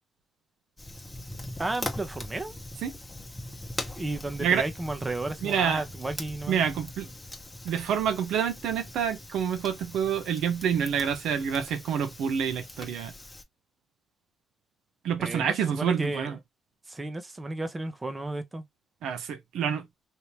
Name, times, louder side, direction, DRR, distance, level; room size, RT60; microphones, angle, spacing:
Fire, 0.8-13.4, left 1 dB, 10° left, 0.9 m, -41 dB
voice 1, 1.6-2.6 3.9-6.6 15.2-16.3 16.9-18.6, right 2 dB, 20° right, 0.8 m, -33 dB
voice 2, 5.4-5.8 6.5-7.1 7.6-13.1 15.0-16.4 19.0-19.8, right 8 dB, 80° right, 0.7 m, -27 dB
3.0 x 2.8 x 3.2 m
cardioid pair, 90°, 0 cm